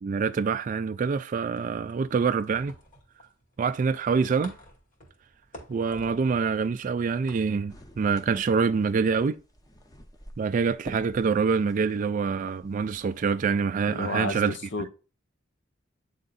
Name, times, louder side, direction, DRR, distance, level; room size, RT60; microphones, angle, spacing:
voice 1, 0.0-2.7 3.6-4.5 5.7-9.4 10.4-14.6, right 5 dB, 40° right, 0.3 m, -26 dB
sound 1, 1.5-8.8, left 1 dB, 45° left, 2.3 m, -52 dB
sound 2, 7.7-13.3, equal, 20° left, 0.8 m, -50 dB
voice 2, 13.9-14.9, left 2 dB, 65° left, 0.9 m, -32 dB
8.7 x 3.7 x 4.0 m
head